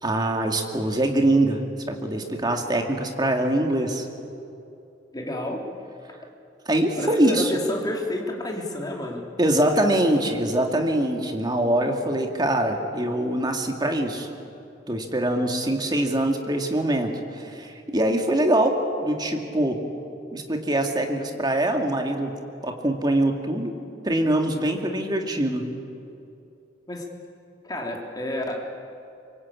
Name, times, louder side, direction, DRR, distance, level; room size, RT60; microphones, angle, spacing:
voice 1, 0.0-4.0 6.7-7.5 9.4-14.3 14.9-19.8 20.3-22.3 22.6-23.7 24.0-25.7, right 1 dB, 25° right, 3 dB, 2.4 m, -23 dB
voice 2, 5.1-5.6 7.0-9.2 26.9-27.1 27.6-28.7, left 1 dB, 20° left, 0 dB, 3.3 m, -30 dB
25.0 x 23.5 x 8.7 m, 2.7 s
head